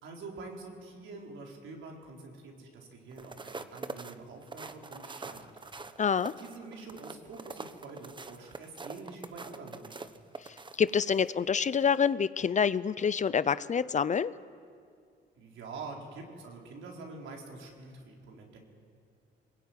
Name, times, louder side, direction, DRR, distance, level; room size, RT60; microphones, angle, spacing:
voice 1, 0.0-5.7 6.4-10.1 15.4-18.6, right 3 dB, 75° right, 0 dB, 4.4 m, -46 dB
sound 1, 3.1-11.3 11.8-12.0, right 3 dB, 25° right, 1.1 m, -44 dB
voice 2, 6.0-6.3 10.8-14.3, left 7 dB, 40° left, 16 dB, 0.7 m, -27 dB
22.5 x 21.0 x 9.4 m, 2.2 s
cardioid pair, 90°, 20 cm